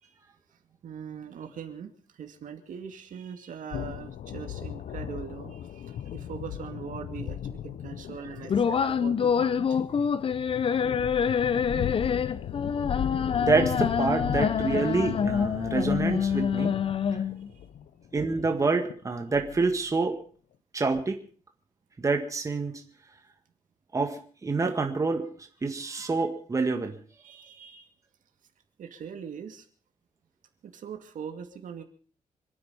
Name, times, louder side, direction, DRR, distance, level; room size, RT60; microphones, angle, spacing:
voice 1, 0.8-9.8 17.5-17.6 27.2-27.9 28.8-29.7 30.6-31.8, right 7 dB, 75° right, 5 dB, 2.4 m, -41 dB
sound 1, 3.7-19.9, left 10 dB, 85° left, 0.8 m, -37 dB
sound 2, 8.5-17.5, left 7 dB, 45° left, 0.7 m, -26 dB
voice 2, 13.4-16.7 18.1-20.2 20.7-21.2 22.0-22.8 23.9-25.3 25.6-27.0, right 4 dB, 25° right, 5 dB, 1.8 m, -27 dB
26.5 x 9.7 x 5.4 m, 0.43 s
wide cardioid pair, 160°, 13 cm